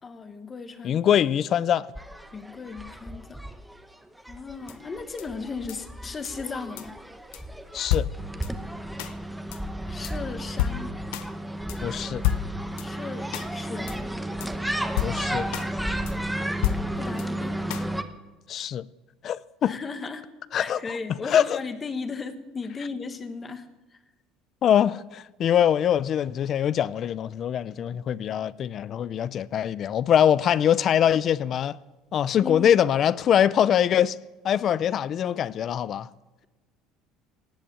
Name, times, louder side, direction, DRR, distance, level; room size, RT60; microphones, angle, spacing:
voice 1, 0.0-1.0 2.3-3.4 4.2-7.0 9.9-11.0 12.8-14.1 17.0-17.6 19.6-20.2 20.5-24.0 32.4-32.7, left 4 dB, 20° left, 1.3 m, -36 dB
voice 2, 0.8-1.9 7.7-8.1 11.8-12.2 15.0-15.5 18.5-18.9 19.2-19.7 20.5-20.8 21.3-21.6 24.6-31.8 32.1-34.2 34.4-36.1, left 9 dB, 35° left, 0.5 m, -23 dB
sound 1, 2.0-18.0, right 1 dB, 5° right, 0.9 m, -33 dB
sound 2, 4.7-4.8 5.2-5.3 5.7-5.8 6.3-6.4 6.8-6.9 7.3-7.4 7.9-8.5 9.0-9.1 9.5-9.6 10.0-10.1 10.6-11.3 11.7-11.8 12.2-12.9 13.3-13.5 13.9-14.0 14.4-14.5 15.0-15.7 16.1-16.2 16.6-17.3 17.7-17.9, left 11 dB, 85° left, 0.8 m, -29 dB
17.5 x 8.5 x 8.9 m
cardioid pair, 155°, 0 cm